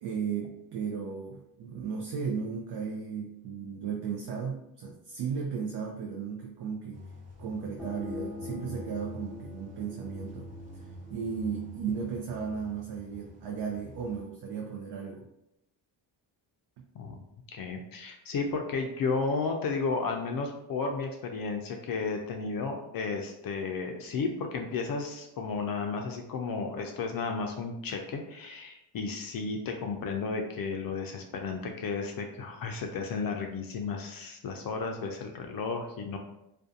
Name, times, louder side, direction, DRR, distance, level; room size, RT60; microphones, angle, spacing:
voice 1, 0.0-7.0 7.4-15.3 16.8-16.9, right 6 dB, 65° right, 0 dB, 0.5 m, -35 dB
sound 1, 6.9-14.2, left 5 dB, 20° right, 0.9 m, -49 dB
sound 2, 7.8-13.2, left 1 dB, 5° left, 0.7 m, -43 dB
voice 2, 17.5-36.2, left 4 dB, 55° left, 3 dB, 0.5 m, -33 dB
2.5 x 2.2 x 2.5 m, 0.81 s
cardioid pair, 65°, 43 cm